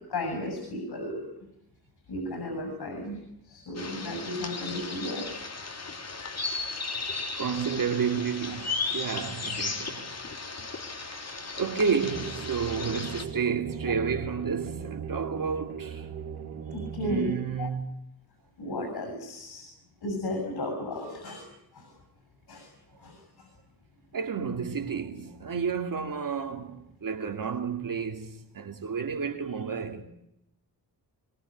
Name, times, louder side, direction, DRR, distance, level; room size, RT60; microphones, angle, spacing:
voice 1, 0.1-1.2 2.1-3.2 3.5-5.3 16.7-17.3 17.6-17.7 18.6-19.7 20.0-21.4 21.8-21.9 22.5-22.7 23.0-23.1, left 1 dB, 90° left, 7.2 m, -34 dB
sound 1, 3.8-13.3, left 4 dB, 40° left, 3.9 m, -35 dB
voice 2, 7.4-10.1 10.9-11.1 11.6-16.1 17.0-18.0 24.1-30.0, right 6 dB, 60° right, 2.8 m, -31 dB
sound 2, 12.0-17.1, right 7 dB, 90° right, 3.1 m, -38 dB
23.0 x 22.5 x 8.8 m
wide cardioid pair, 115°, 38 cm